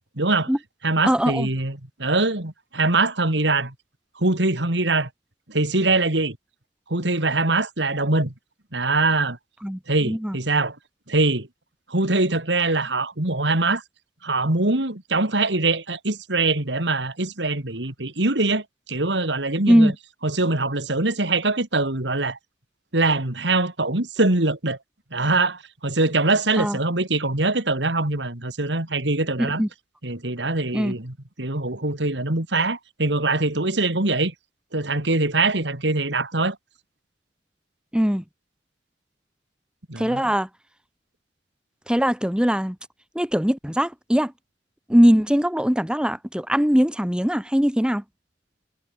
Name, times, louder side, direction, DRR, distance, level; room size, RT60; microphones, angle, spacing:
voice 1, 0.2-0.5 0.8-3.7 4.2-5.1 5.5-6.4 6.9-8.3 8.7-9.4 9.9-10.8 11.1-11.5 11.9-13.8 14.2-19.9 20.2-22.4 22.9-24.8 25.1-29.6 30.0-34.3 34.7-36.6 39.9-40.3, right 2 dB, 75° right, 3.0 m, -23 dB
voice 2, 1.0-1.5 9.6-10.4 19.7-19.9 26.6-26.8 29.4-29.7 30.7-30.9 37.9-38.2 40.0-40.5 41.9-42.8 43.1-44.3 44.9-48.0, equal, 5° right, 1.3 m, -21 dB
head